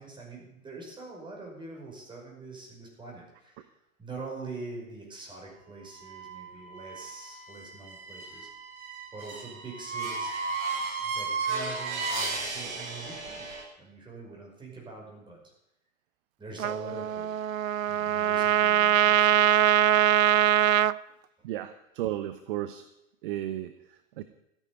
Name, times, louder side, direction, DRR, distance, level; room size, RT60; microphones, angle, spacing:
voice 1, 0.0-3.7 4.0-8.7 9.1-10.3 10.7-15.4 16.4-17.3 17.9-19.6, right 3 dB, 10° right, -2 dB, 5.6 m, -44 dB
sound 1, 5.9-13.6, right 4 dB, 55° right, 6.9 m, -35 dB
Trumpet, 16.6-20.9, right 10 dB, 75° right, 0.5 m, -22 dB
voice 2, 21.4-22.9 23.2-24.2, right 13 dB, 40° right, 11 dB, 0.8 m, -34 dB
13.0 x 9.5 x 9.3 m, 0.83 s
figure-of-eight pair, 105°, 41 cm